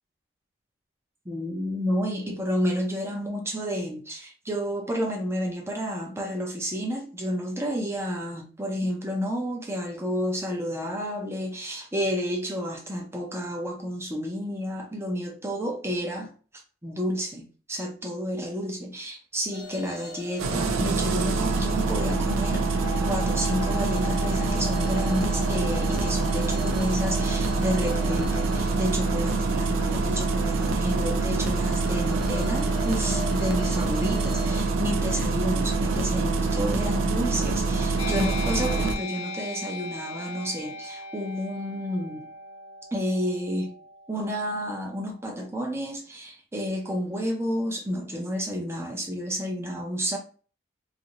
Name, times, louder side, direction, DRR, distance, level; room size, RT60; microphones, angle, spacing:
voice 1, 1.3-16.3 16.8-22.7 23.1-42.2 42.9-43.7 44.1-50.2, equal, 15° right, 0.5 m, -30 dB
sound 1, 19.5-34.6, left 5 dB, 55° left, 0.8 m, -40 dB
Engine starting, 20.4-39.0, right 3 dB, 85° right, 0.4 m, -25 dB
sound 2, 38.0-45.1, left 3 dB, 75° left, 0.3 m, -39 dB
2.6 x 2.5 x 2.9 m
head